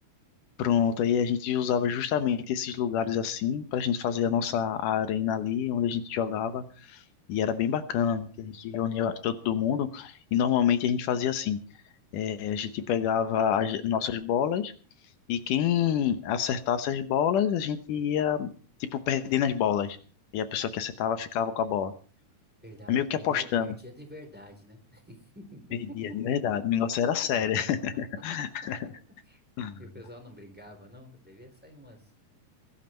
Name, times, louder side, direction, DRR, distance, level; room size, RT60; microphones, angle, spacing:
voice 1, 0.6-7.0 7.3-11.6 12.1-14.7 15.3-18.5 18.8-20.0 20.3-21.9 22.9-23.8 26.0-28.8 29.6-29.8, left 8 dB, 80° left, 11 dB, 2.5 m, -27 dB
voice 2, 22.6-26.2 28.4-28.7 29.2-29.4 29.8-32.1, equal, 5° right, 6 dB, 3.5 m, -48 dB
21.0 x 11.5 x 4.4 m, 0.40 s
omnidirectional pair, 3.7 m